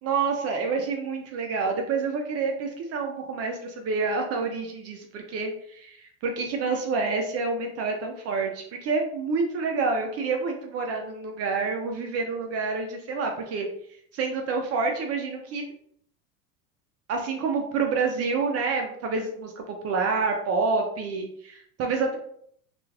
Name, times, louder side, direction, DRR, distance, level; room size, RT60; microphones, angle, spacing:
voice 1, 0.0-13.7 14.1-15.6 17.1-22.2, right 4 dB, 35° right, 3 dB, 0.4 m, -28 dB
3.0 x 2.4 x 2.3 m, 0.66 s
hypercardioid pair, 95°, 46 cm